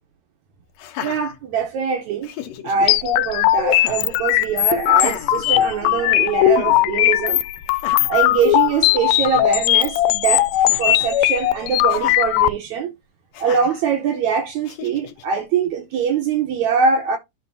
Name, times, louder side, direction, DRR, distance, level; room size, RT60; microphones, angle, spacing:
Laughter, 0.7-1.9 2.2-2.9 3.7-4.2 4.9-6.1 6.5-6.8 7.7-8.3 8.8-8.9 9.0-9.4 10.6-11.2 11.9-12.2 13.3-13.8 14.6-15.2, left 11 dB, 70° left, 1.7 m, -35 dB
voice 1, 1.0-2.3 2.6-7.4 8.1-12.9 13.4-17.2, right 6 dB, 75° right, 1.8 m, -22 dB
sound 1, 2.9-12.5, left 15 dB, 90° left, 2.3 m, -18 dB
11.5 x 3.9 x 2.7 m
omnidirectional pair, 4.0 m